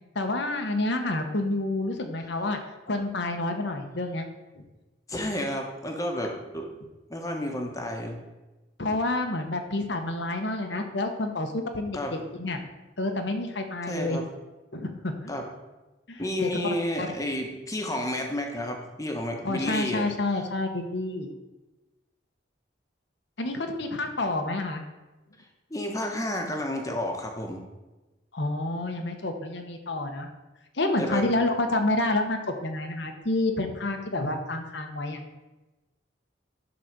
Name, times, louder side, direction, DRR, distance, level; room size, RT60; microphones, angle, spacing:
voice 1, 0.1-2.6 2.9-4.2 4.5-4.6 8.8-12.6 13.0-14.2 14.7-15.3 16.1-16.6 17.0-17.1 19.4-21.3 23.4-24.8 28.3-30.3 30.7-35.2, left 2 dB, 65° left, 5 dB, 1.1 m, -29 dB
voice 2, 5.1-6.6 7.1-8.2 11.9-12.1 13.9-14.2 15.3-15.4 16.2-20.1 25.7-27.6 31.0-31.3, left 1 dB, 20° left, 2 dB, 1.3 m, -31 dB
11.0 x 4.2 x 6.7 m, 1.1 s
head